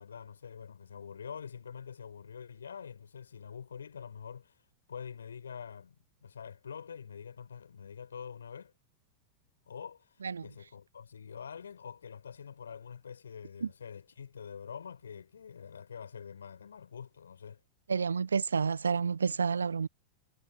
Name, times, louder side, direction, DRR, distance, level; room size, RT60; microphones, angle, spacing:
voice 1, 0.0-5.9 6.2-8.7 9.7-17.6, left 7 dB, 70° left, 6.1 m, -46 dB
voice 2, 17.9-19.9, right 5 dB, 75° right, 0.9 m, -29 dB
figure-of-eight pair, 90°, 0 cm